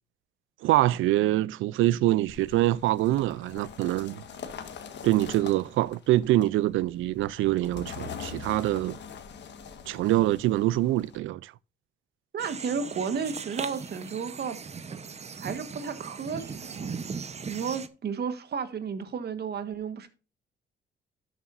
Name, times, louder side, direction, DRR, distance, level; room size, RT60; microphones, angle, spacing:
voice 1, 0.6-4.2 5.0-9.0 9.9-11.5, right 15 dB, 80° right, 0.4 m, -25 dB
sound 1, 2.3-11.2, left 7 dB, 65° left, 1.5 m, -43 dB
voice 2, 12.3-14.6 15.4-17.0 17.5-20.1, right 6 dB, 55° right, 1.5 m, -33 dB
sound 2, 12.4-17.9, right 5 dB, 35° right, 0.9 m, -39 dB
12.0 x 7.3 x 2.6 m
cardioid pair, 90°, 20 cm